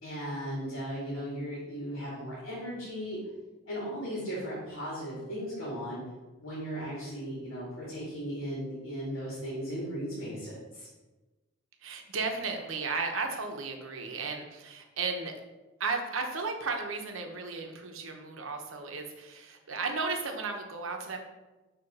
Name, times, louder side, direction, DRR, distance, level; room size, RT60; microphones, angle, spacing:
voice 1, 0.0-3.2 3.7-6.0 6.4-10.9, equal, 65° left, -7 dB, 2.1 m, -37 dB
voice 2, 11.8-15.3 15.8-21.2, right 4 dB, 75° right, 4 dB, 0.9 m, -34 dB
6.9 x 3.1 x 5.4 m, 1.1 s
head